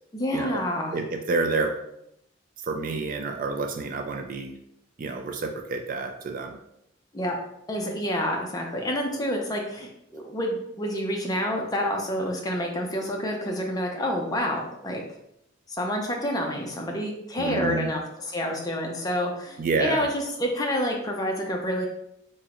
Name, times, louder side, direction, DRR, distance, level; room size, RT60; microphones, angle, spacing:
voice 1, 0.1-1.0 7.1-7.4 7.7-15.0 15.7-21.9, equal, 20° left, 1 dB, 0.5 m, -28 dB
voice 2, 0.9-1.8 2.6-4.6 5.0-6.6 17.4-17.9 19.6-20.1, right 3 dB, 40° right, 5 dB, 0.3 m, -28 dB
3.6 x 3.0 x 2.9 m, 0.78 s
head